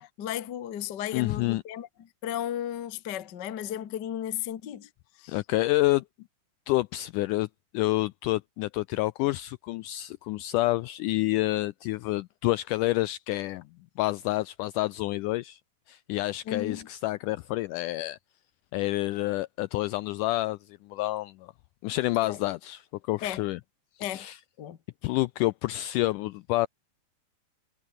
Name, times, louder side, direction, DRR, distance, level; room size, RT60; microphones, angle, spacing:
voice 1, 0.0-4.9 5.2-5.4 16.5-16.9 22.2-22.4 23.2-23.4 24.0-24.3 24.6-24.8, left 11 dB, 60° left, 1.1 m, -34 dB
voice 2, 1.1-1.6 5.3-6.0 6.7-7.5 7.7-13.6 14.0-15.6 15.9-18.2 18.7-21.5 21.8-23.6 24.0-24.4 25.0-26.7, left 18 dB, 85° left, 1.8 m, -28 dB
omnidirectional pair, 4.1 m